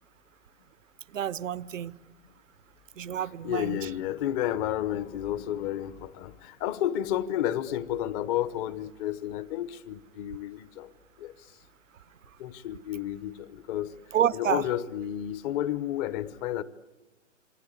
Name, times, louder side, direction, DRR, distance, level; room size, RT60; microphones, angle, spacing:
voice 1, 1.1-2.0 3.0-3.8 14.1-14.6, right 10 dB, 75° right, 0.8 m, -29 dB
voice 2, 3.4-10.9 11.2-11.3 12.4-13.9 14.3-16.6, left 11 dB, 30° left, 1.0 m, -31 dB
28.0 x 23.0 x 8.3 m
hypercardioid pair, 130°, 38 cm